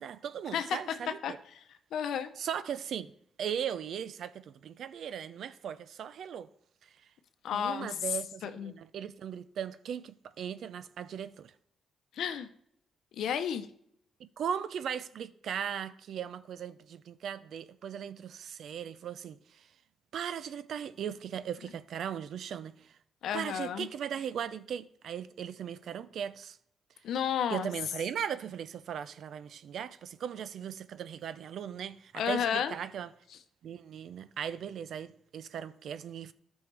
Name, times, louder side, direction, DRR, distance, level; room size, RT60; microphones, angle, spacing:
voice 1, 0.0-1.4 2.4-3.1 3.4-6.5 7.5-11.5 14.2-19.7 20.1-23.0 23.3-26.6 27.5-33.1 33.6-36.3, right 8 dB, 70° right, 0.5 m, -38 dB
voice 2, 1.9-2.3 7.4-7.9 8.4-8.7 12.2-12.5 13.2-13.6 23.2-23.9 27.0-27.7 32.2-32.7, left 8 dB, 80° left, 0.8 m, -31 dB
13.0 x 5.4 x 3.4 m
cardioid pair, 80°, 0 cm